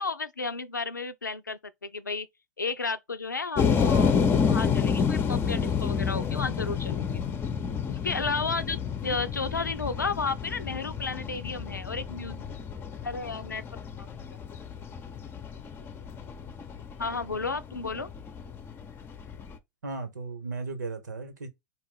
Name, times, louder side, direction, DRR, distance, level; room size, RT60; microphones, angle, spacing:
voice 1, 0.0-2.3 2.6-7.2 7.9-12.4 13.0-13.6 14.0-14.1 17.0-18.1, left 4 dB, 90° left, 0.5 m, -33 dB
sound 1, 3.6-19.6, left 6 dB, 25° left, 0.7 m, -29 dB
voice 2, 19.8-21.5, right 3 dB, 75° right, 1.4 m, -35 dB
4.6 x 2.5 x 3.8 m
figure-of-eight pair, 95°, 10 cm